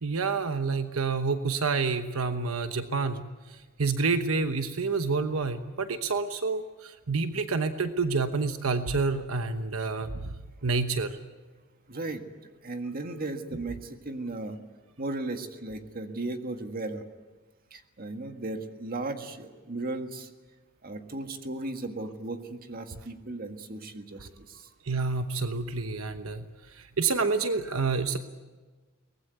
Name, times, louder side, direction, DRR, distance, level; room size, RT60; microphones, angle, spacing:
voice 1, 0.0-10.3 10.6-11.2 24.8-26.5 26.7-28.2, right 4 dB, 80° right, 8 dB, 1.1 m, -28 dB
voice 2, 11.9-12.2 12.6-14.6 15.0-17.0 17.7-20.3 20.8-24.7, right 2 dB, 45° right, 6 dB, 1.7 m, -36 dB
23.5 x 19.5 x 9.4 m, 1.3 s
head